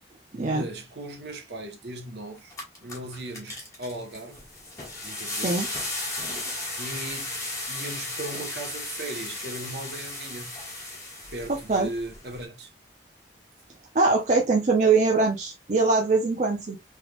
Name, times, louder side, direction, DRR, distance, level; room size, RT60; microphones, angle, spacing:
voice 1, 0.3-2.5 2.8-4.4 5.0-5.7 6.8-10.5 11.3-12.7, right 1 dB, 70° right, 1.0 m, -38 dB
sound 1, 2.0-2.1 2.4-12.4, left 2 dB, 20° left, 1.4 m, -35 dB
voice 2, 13.9-16.8, right 3 dB, 40° right, 0.5 m, -22 dB
3.4 x 3.2 x 2.3 m
head